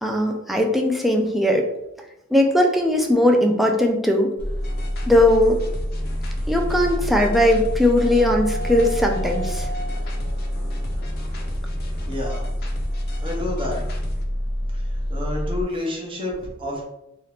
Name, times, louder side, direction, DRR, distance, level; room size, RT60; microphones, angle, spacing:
voice 1, 0.0-1.7 2.3-4.3 5.1-5.6 6.5-9.7, left 1 dB, ahead, 0 dB, 0.3 m, -19 dB
sound 1, 4.4-15.6, equal, 25° left, 0.8 m, -27 dB
sound 2, 4.6-14.2, equal, 50° left, 0.5 m, -39 dB
sound 3, 6.9-12.5, right 1 dB, 70° right, 1.1 m, -38 dB
voice 2, 12.1-12.4 13.2-13.8 14.7-14.8 15.1-16.8, left 1 dB, 25° right, -2 dB, 0.8 m, -29 dB
2.7 x 2.4 x 3.3 m, 0.89 s
head